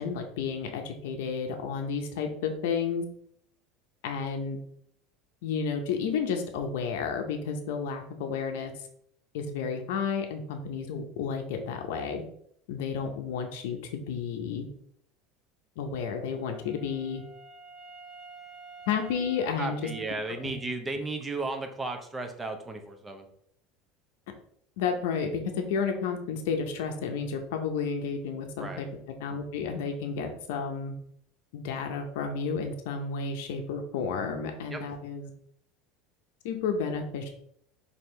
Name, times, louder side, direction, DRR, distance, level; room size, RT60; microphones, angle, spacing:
voice 1, 0.0-3.0 4.0-4.6 5.4-8.8 9.3-12.2 12.7-14.7 15.8-17.2 18.9-19.8 20.4-20.5 24.8-25.3 25.6-28.9 29.2-30.9 31.5-35.3 36.4-37.3, left 6 dB, 80° left, 4 dB, 0.6 m, -31 dB
Wind instrument woodwind instrument, 16.0-20.8, right 3 dB, 15° left, 1.5 m, -49 dB
voice 2, 19.6-23.3 28.6-28.8 34.7-34.8, right 3 dB, 15° right, 5 dB, 0.6 m, -34 dB
4.3 x 2.7 x 3.2 m, 0.67 s
supercardioid pair, 120°, 0 cm